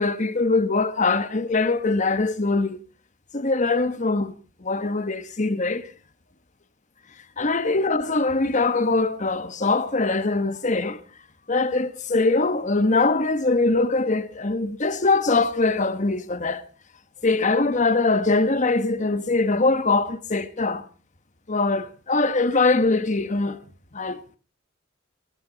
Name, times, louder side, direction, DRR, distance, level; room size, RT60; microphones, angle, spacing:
voice 1, 0.0-2.8 3.3-4.3 4.6-5.9 7.4-11.0 11.5-16.6 17.2-20.8 21.5-23.6 23.9-24.4, left 3 dB, 40° left, 1.2 m, -22 dB
21.0 x 16.0 x 4.0 m
head